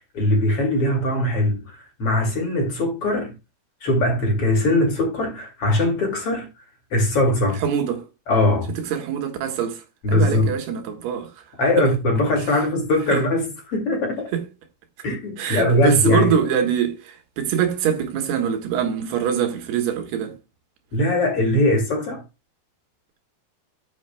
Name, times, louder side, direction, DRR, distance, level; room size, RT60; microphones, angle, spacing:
voice 1, 0.1-3.3 3.8-6.5 6.9-7.6 8.3-8.7 10.0-10.5 11.6-14.3 15.0-16.4 20.9-22.2, left 1 dB, 40° left, 2.8 m, -21 dB
voice 2, 7.6-8.0 8.9-9.8 10.1-11.3 11.8-11.9 13.1-13.2 14.3-14.4 15.4-20.4, right 8 dB, 85° right, 3.5 m, -23 dB
13.0 x 7.2 x 2.3 m
omnidirectional pair, 4.6 m